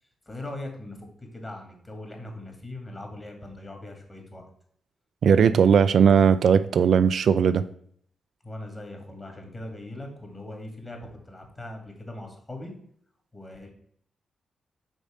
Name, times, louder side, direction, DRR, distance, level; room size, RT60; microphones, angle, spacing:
voice 1, 0.3-4.4 8.4-12.7 13.3-13.7, left 1 dB, 25° left, 3 dB, 2.2 m, -40 dB
voice 2, 5.2-7.6, right 7 dB, 70° right, 13 dB, 0.3 m, -18 dB
5.1 x 4.1 x 5.1 m, 0.63 s
supercardioid pair, 55°, 0 cm